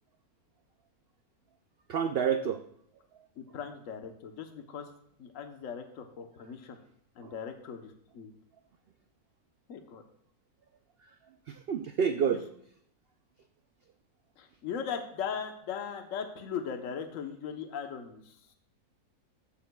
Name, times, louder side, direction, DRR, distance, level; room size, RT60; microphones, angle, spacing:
voice 1, 1.9-2.6 7.2-7.3 11.0-11.1 11.5-12.4, right 7 dB, 85° right, 8 dB, 0.5 m, -29 dB
voice 2, 3.4-4.9 5.2-6.8 7.2-8.3 9.7-10.0 12.3-12.4 14.4-18.4, left 7 dB, 60° left, 5 dB, 1.2 m, -39 dB
14.5 x 9.3 x 2.3 m, 0.69 s
omnidirectional pair, 1.6 m